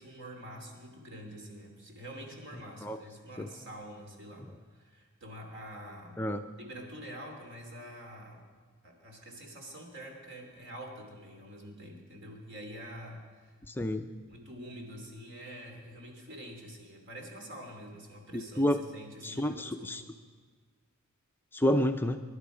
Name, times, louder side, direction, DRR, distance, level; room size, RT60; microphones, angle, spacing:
voice 1, 0.0-6.2 6.6-8.4 8.8-13.6 14.3-20.1, equal, 55° right, 2 dB, 2.9 m, -46 dB
voice 2, 13.7-14.1 18.3-18.8 19.2-20.0 21.5-22.2, left 1 dB, 10° left, 6 dB, 0.5 m, -29 dB
24.0 x 11.5 x 5.0 m, 1.5 s
head